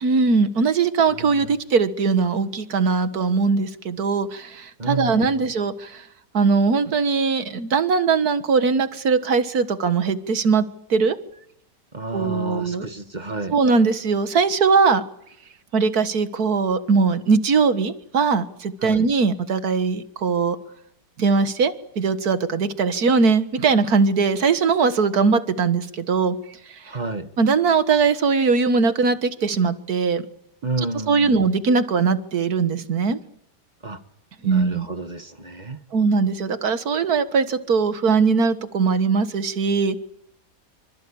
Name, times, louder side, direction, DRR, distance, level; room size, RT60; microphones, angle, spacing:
voice 1, 0.0-6.0 6.3-11.2 12.1-12.9 13.5-15.0 15.7-20.6 21.2-26.4 27.4-30.2 31.1-33.2 34.4-34.9 35.9-40.0, right 5 dB, 60° right, 11 dB, 2.0 m, -20 dB
voice 2, 1.2-1.6 4.8-5.4 11.9-13.6 18.8-19.1 26.9-27.3 30.6-31.4 33.8-34.0 34.4-35.8, right 3 dB, 25° right, 9 dB, 1.6 m, -31 dB
26.5 x 25.5 x 8.7 m, 0.76 s
omnidirectional pair, 1.8 m